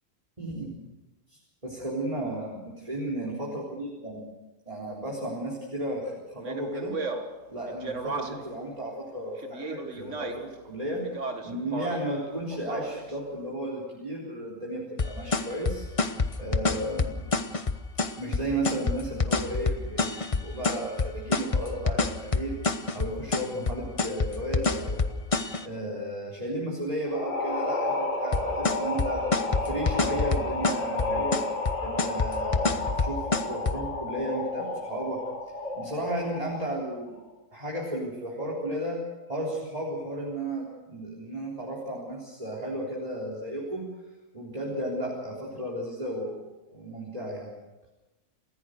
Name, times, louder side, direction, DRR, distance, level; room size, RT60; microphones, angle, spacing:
voice 1, 0.4-0.8 1.3-4.3 4.7-7.0 7.5-11.1 11.4-15.9 16.4-17.2 18.2-22.6 22.9-25.2 25.6-29.3 29.6-31.5 31.8-35.2 35.7-37.2 37.5-39.0 39.3-43.8 44.3-46.4 46.7-47.5, right 1 dB, 25° right, -4 dB, 4.0 m, -34 dB
Speech, 6.4-8.6 9.4-10.6 11.0-12.1 12.5-13.2, right 3 dB, 65° right, 2.1 m, -36 dB
sound 1, 15.0-25.6 28.3-33.8, left 3 dB, 30° left, 0.9 m, -26 dB
sound 2, 27.1-36.8, left 2 dB, 90° left, 4.7 m, -31 dB
28.5 x 15.5 x 6.6 m, 1.1 s
omnidirectional pair, 1.4 m